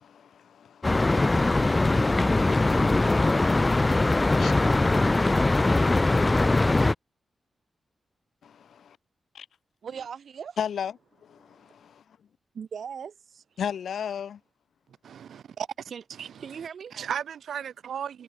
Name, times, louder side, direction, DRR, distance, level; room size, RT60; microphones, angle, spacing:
voice 1, 0.0-4.5 8.4-9.0 9.3-9.5 10.6-12.2 13.6-14.4, left 8 dB, 80° left, 2.9 m, -37 dB
sound 1, 0.8-6.9, left 2 dB, 20° left, 0.4 m, -21 dB
voice 2, 9.8-10.6 11.5-11.7 12.5-13.4 15.9-16.0 16.4-16.9, right 7 dB, 65° right, 5.9 m, -39 dB
voice 3, 15.0-16.6 16.9-18.2, right 8 dB, 85° right, 4.9 m, -36 dB
wide cardioid pair, 130°, 0 cm